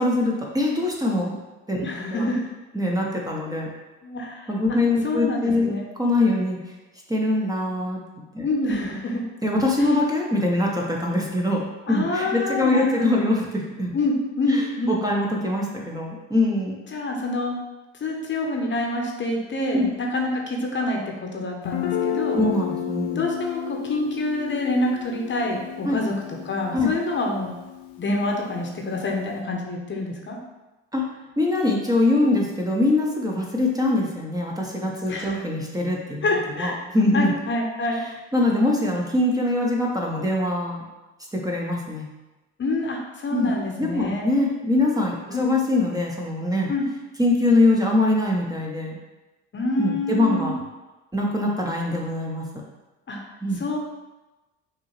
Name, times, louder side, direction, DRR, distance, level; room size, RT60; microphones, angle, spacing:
voice 1, 0.0-1.4 1.7-2.3 2.7-3.7 4.5-5.7 6.0-6.6 7.1-8.0 8.3-8.8 9.4-13.9 14.5-16.8 19.7-19.9 22.3-23.2 25.8-26.0 26.7-26.9 30.9-36.3 36.6-37.3 38.3-40.9 41.3-42.1 43.3-43.5 43.8-46.7 47.2-49.0 49.8-50.5 51.1-52.4 53.4-53.6, left 2 dB, 10° right, -2 dB, 0.9 m, -23 dB
voice 2, 1.8-2.5 4.0-4.8 5.0-5.9 8.4-9.2 11.9-13.2 13.9-15.0 16.9-17.5 18.0-22.4 23.0-26.1 26.4-27.5 28.0-30.4 35.1-35.4 36.2-36.8 37.1-38.0 42.6-44.3 45.3-45.4 46.7-46.8 49.5-50.5 53.1-53.2 53.6-53.8, left 2 dB, 30° left, 0 dB, 1.0 m, -27 dB
Guitar, 21.6-29.3, left 9 dB, 55° left, 0.6 m, -32 dB
5.6 x 2.7 x 3.1 m, 1.1 s
hypercardioid pair, 60°, 35 cm